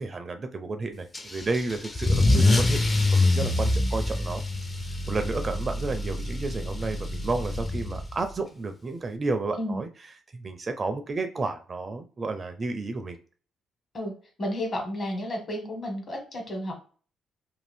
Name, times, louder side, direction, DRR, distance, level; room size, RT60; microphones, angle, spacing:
voice 1, 0.0-4.4 5.1-9.9 10.3-13.2, right 3 dB, 35° right, 8 dB, 0.4 m, -31 dB
Car / Engine starting / Accelerating revving vroom, 1.1-8.3, left 2 dB, 25° left, 0.5 m, -25 dB
voice 2, 14.4-16.7, equal, 45° left, 2 dB, 1.3 m, -32 dB
2.6 x 2.3 x 3.3 m, 0.40 s
cardioid pair, 90°, 0 cm